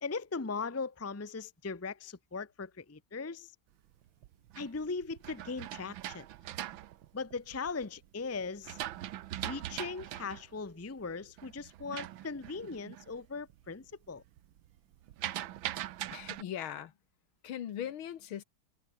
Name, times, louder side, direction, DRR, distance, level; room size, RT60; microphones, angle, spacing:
voice 1, 0.0-3.5 4.6-6.3 7.1-8.8 9.4-14.2, left 4 dB, 15° left, 0.5 m, -39 dB
sound 1, 4.0-7.8 8.3-13.2 13.5-13.9 14.2-16.4, right 13 dB, 75° right, 1.6 m, -41 dB
voice 2, 16.1-16.9 17.4-18.4, left 10 dB, 80° left, 2.1 m, -39 dB
omnidirectional pair, 2.3 m